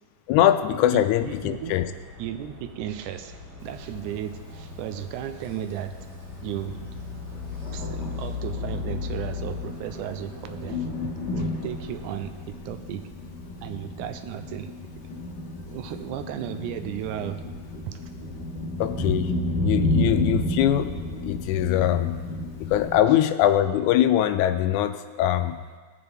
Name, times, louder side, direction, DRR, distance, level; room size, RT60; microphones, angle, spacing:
voice 1, 0.3-1.8 18.8-19.3 19.6-20.9 21.2-22.2 22.6-25.6, left 12 dB, 80° left, 9 dB, 1.9 m, -22 dB
voice 2, 0.9-1.8 2.2-6.0 6.3-6.9 7.7-10.9 11.3-13.1 13.6-15.0 15.6-17.4 17.9-18.0 23.1-23.2, right 11 dB, 80° right, 9 dB, 2.1 m, -35 dB
sound 1, 1.2-12.3, left 5 dB, 50° right, 1.5 m, -39 dB
Thunder, 3.6-23.0, left 1 dB, 45° left, 1.5 m, -32 dB
18.0 x 7.0 x 3.4 m, 1.5 s
omnidirectional pair, 3.6 m